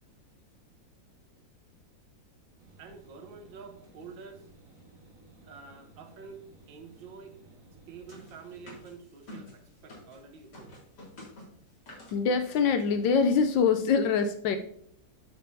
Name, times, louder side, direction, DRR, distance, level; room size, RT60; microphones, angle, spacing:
sound 1, 2.6-8.8, right 3 dB, 45° right, 1.9 m, -56 dB
voice 1, 2.8-4.5 5.4-6.4 6.7-7.3 7.9-10.8, right 5 dB, 75° right, 6 dB, 1.8 m, -48 dB
sound 2, 8.1-10.2 10.5-12.2 12.5-12.7 13.0-13.1 13.3-13.6, left 1 dB, 60° left, 3.1 m, -49 dB
voice 2, 12.1-14.6, left 5 dB, 80° left, 8 dB, 1.3 m, -24 dB
8.8 x 6.8 x 2.7 m, 0.69 s
omnidirectional pair, 2.1 m